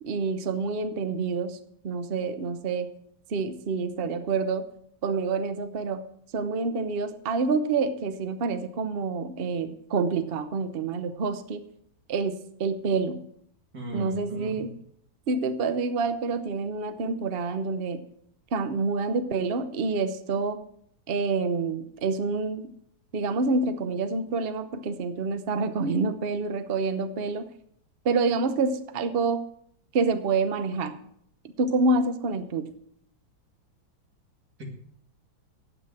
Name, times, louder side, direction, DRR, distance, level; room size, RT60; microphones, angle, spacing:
voice 1, 0.0-1.6 1.8-2.9 3.3-4.7 5.0-6.0 6.3-11.6 12.1-13.2 13.9-14.7 15.3-18.0 18.5-20.6 21.1-22.7 23.1-27.5 28.0-29.5 29.9-31.0 31.6-32.7, right 4 dB, 70° right, 10 dB, 0.5 m, -27 dB
voice 2, 13.7-14.7, right 1 dB, 50° right, 1 dB, 2.8 m, -37 dB
9.3 x 8.1 x 7.5 m, 0.68 s
omnidirectional pair, 2.2 m